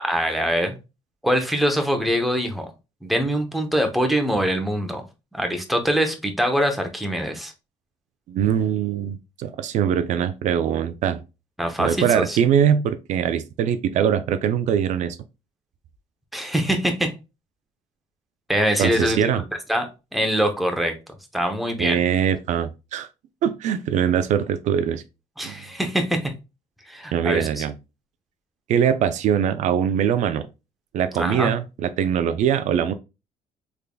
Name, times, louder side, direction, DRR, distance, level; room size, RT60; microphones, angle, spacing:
voice 1, 0.0-0.7 1.2-2.7 3.0-5.0 5.3-7.5 11.6-12.4 16.3-17.1 18.5-19.2 19.7-20.9 21.3-22.0 25.4-26.3 26.9-27.6 31.2-31.5, equal, ahead, 0.7 m, -23 dB
voice 2, 8.3-11.2 11.8-15.2 18.8-19.4 21.8-23.1 23.4-25.0 25.4-25.6 27.1-27.7 28.7-30.5 30.9-32.9, right 8 dB, 65° right, 0.4 m, -22 dB
3.6 x 3.3 x 2.3 m
cardioid pair, 110°, 13 cm